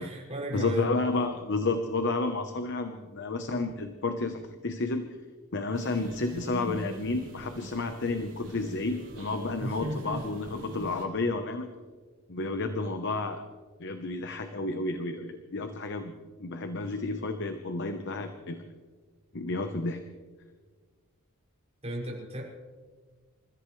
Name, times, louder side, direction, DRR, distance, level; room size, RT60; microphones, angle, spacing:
voice 1, 0.0-0.9 1.1-1.2 9.6-10.2 21.8-22.4, equal, 30° right, -4 dB, 6.3 m, -35 dB
voice 2, 0.5-5.1 5.5-11.7 12.3-13.4 13.8-16.1 16.4-18.6 19.3-20.0, left 3 dB, 55° left, 7 dB, 1.0 m, -31 dB
sound 1, 5.7-11.0, right 1 dB, 55° right, 4.2 m, -43 dB
28.5 x 14.5 x 3.3 m, 1.5 s
head